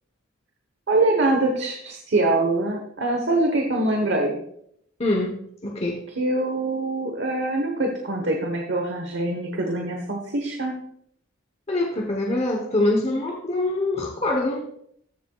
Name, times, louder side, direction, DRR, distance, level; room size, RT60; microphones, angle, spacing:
voice 1, 0.9-4.4 6.2-10.7, right 2 dB, 60° right, 2 dB, 1.1 m, -24 dB
voice 2, 5.0-5.3 5.6-6.0 11.7-14.7, left 2 dB, 30° left, 1 dB, 0.9 m, -24 dB
14.5 x 6.7 x 2.3 m, 0.69 s
head